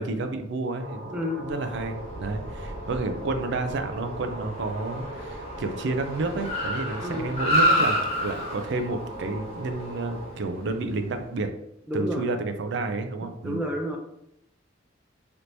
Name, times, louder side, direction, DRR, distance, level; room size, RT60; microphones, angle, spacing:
voice 1, 0.0-11.5 11.9-13.6, right 3 dB, 65° right, 7 dB, 0.4 m, -30 dB
sound 1, 0.8-10.3, right 1 dB, 90° right, 1.5 m, -40 dB
voice 2, 1.1-1.4 7.0-7.3 11.9-12.3 13.4-14.0, equal, 5° right, 0 dB, 0.5 m, -30 dB
Car, 1.6-11.1, equal, 35° left, 1.1 m, -30 dB
3.4 x 2.9 x 2.6 m, 0.79 s
head